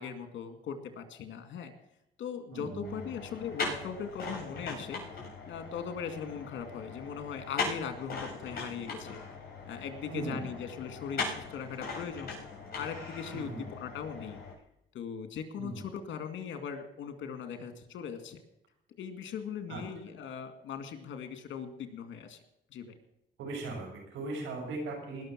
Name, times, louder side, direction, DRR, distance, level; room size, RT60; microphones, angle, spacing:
voice 1, 0.0-1.7 2.2-5.0 5.5-9.2 9.7-12.3 12.7-14.4 14.9-18.4 19.0-22.4 22.7-23.0, left 7 dB, 70° left, 8 dB, 2.3 m, -39 dB
voice 2, 2.5-3.0 10.1-10.5 13.3-13.6 15.6-15.8 19.7-19.8 23.4-25.2, right 3 dB, 90° right, 0 dB, 6.9 m, -38 dB
sound 1, 2.8-14.5, left 4 dB, 50° left, 7.3 m, -40 dB
20.0 x 6.7 x 7.5 m, 0.84 s
cardioid pair, 90°, 20 cm